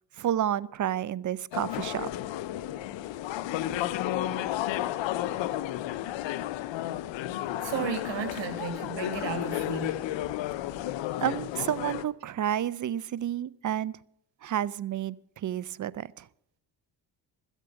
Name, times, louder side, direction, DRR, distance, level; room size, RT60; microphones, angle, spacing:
voice 1, 0.2-2.1 11.2-13.9 14.4-16.3, right 10 dB, 40° right, 19 dB, 0.5 m, -30 dB
sound 1, 1.5-12.0, left 13 dB, 75° left, 0.7 m, -32 dB
voice 2, 7.3-10.0, right 7 dB, 70° right, 6 dB, 1.9 m, -34 dB
13.5 x 8.2 x 7.1 m, 0.72 s
cardioid pair, 80°, 45 cm